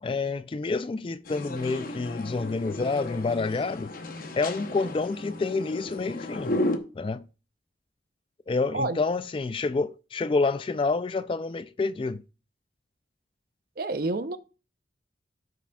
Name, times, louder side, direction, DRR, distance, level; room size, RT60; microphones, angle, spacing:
voice 1, 0.0-3.9 4.4-6.6 6.9-7.3 8.5-12.2, left 3 dB, 30° left, 0.3 m, -28 dB
sound 1, 1.3-6.8, left 1 dB, 50° left, 0.8 m, -34 dB
voice 2, 13.8-14.4, right 2 dB, 55° right, 0.6 m, -28 dB
13.5 x 5.9 x 2.3 m
head